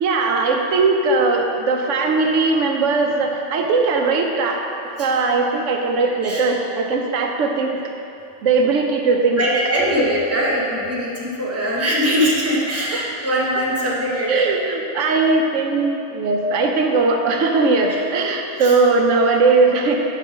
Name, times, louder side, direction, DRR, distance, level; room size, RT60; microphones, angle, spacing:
voice 1, 0.0-4.6 5.0-7.8 8.4-9.4 10.0-10.5 12.9-13.0 14.3-20.0, right 3 dB, 85° right, 2 dB, 1.0 m, -19 dB
voice 2, 9.4-14.5 17.9-18.0 18.6-18.8, equal, 15° right, -6 dB, 1.0 m, -22 dB
5.8 x 5.4 x 5.0 m, 2.7 s
omnidirectional pair, 1.2 m